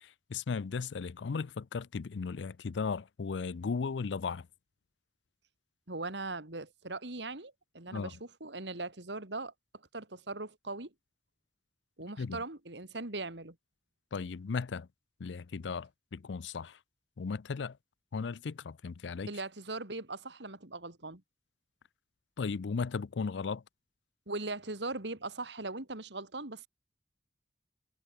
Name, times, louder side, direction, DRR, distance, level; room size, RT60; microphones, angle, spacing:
voice 1, 0.3-4.5 7.9-8.1 12.2-12.4 14.1-14.9 15.2-16.7 17.2-17.7 18.1-19.3 22.4-23.6, left 5 dB, 80° left, 0.5 m, -36 dB
voice 2, 5.9-9.5 9.9-10.9 12.0-13.6 19.3-21.2 24.3-26.7, right 2 dB, 75° right, 2.9 m, -40 dB
head